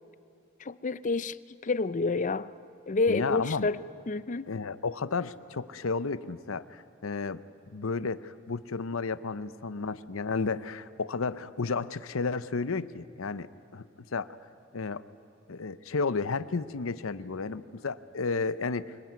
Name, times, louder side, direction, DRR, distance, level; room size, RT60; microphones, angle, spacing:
voice 1, 0.6-1.4 1.6-2.5 2.9-3.8 4.1-4.5, left 3 dB, 40° left, 16 dB, 0.5 m, -28 dB
voice 2, 3.1-3.7 4.5-7.4 7.7-13.9 14.1-14.3 14.7-15.0 15.5-19.0, left 4 dB, 90° left, 15 dB, 0.8 m, -32 dB
25.0 x 21.0 x 9.4 m, 2.4 s
head